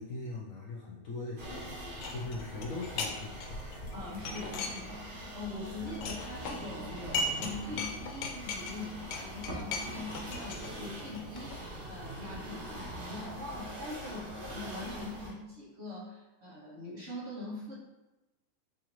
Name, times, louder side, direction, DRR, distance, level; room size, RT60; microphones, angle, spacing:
voice 1, 0.0-1.7 2.1-4.0, left 3 dB, 70° left, -3 dB, 0.8 m, -41 dB
sound 1, 1.4-15.3, right 1 dB, 75° right, 1.6 m, -43 dB
sound 2, 2.0-3.1 3.4-5.2 5.5-7.5 7.8-11.6, left 3 dB, 85° left, 1.2 m, -38 dB
voice 2, 3.9-17.8, left 2 dB, 45° right, -7 dB, 1.0 m, -43 dB
4.8 x 2.5 x 3.0 m, 1.0 s
omnidirectional pair, 1.8 m